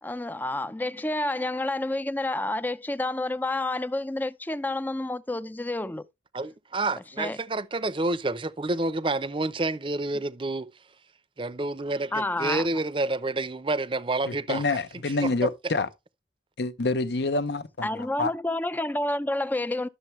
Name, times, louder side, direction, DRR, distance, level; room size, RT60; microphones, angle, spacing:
voice 1, 0.0-6.1 7.2-7.4 12.1-12.7 17.8-19.9, left 2 dB, 10° left, 0.4 m, -29 dB
voice 2, 6.3-10.7 11.4-14.6 15.2-15.5, right 2 dB, 30° right, 0.6 m, -29 dB
voice 3, 14.3-15.9 16.6-18.3, left 3 dB, 75° left, 0.8 m, -27 dB
12.0 x 6.9 x 3.2 m
head